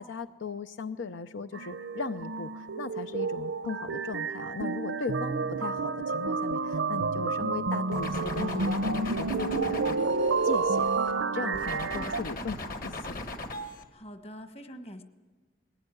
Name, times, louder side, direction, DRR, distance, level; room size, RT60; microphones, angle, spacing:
voice 1, 0.0-10.9 11.3-13.2, left 4 dB, 75° left, 11 dB, 0.6 m, -38 dB
sound 1, 1.5-12.2, right 4 dB, 85° right, 0.8 m, -30 dB
sound 2, 7.9-11.1 11.5-13.8, left 2 dB, 50° left, 1.8 m, -38 dB
voice 2, 13.9-15.0, equal, 35° left, 9 dB, 1.3 m, -44 dB
20.0 x 16.0 x 9.8 m, 1.3 s
head